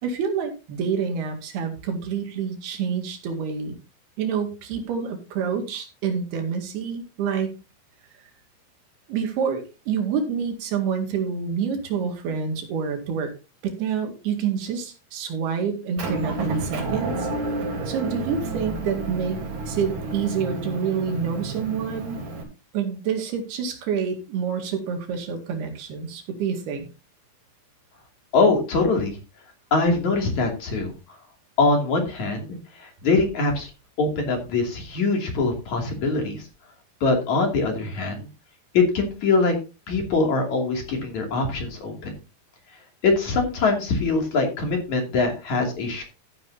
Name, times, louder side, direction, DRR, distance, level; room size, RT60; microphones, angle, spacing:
voice 1, 0.0-3.8 4.2-7.5 9.1-13.3 13.6-17.3 17.9-19.4 19.7-22.2 22.7-26.9, right 6 dB, 70° right, 4 dB, 4.0 m, -27 dB
Motor vehicle (road) / Engine, 16.0-22.4, right 2 dB, 55° right, 4.7 m, -30 dB
voice 2, 28.3-29.2 29.7-30.9 31.6-33.7 34.0-36.4 37.0-38.3 38.7-39.6 39.9-42.1 43.0-46.0, left 3 dB, 50° left, 2 dB, 3.7 m, -23 dB
14.0 x 9.5 x 2.8 m, 0.30 s
omnidirectional pair, 4.7 m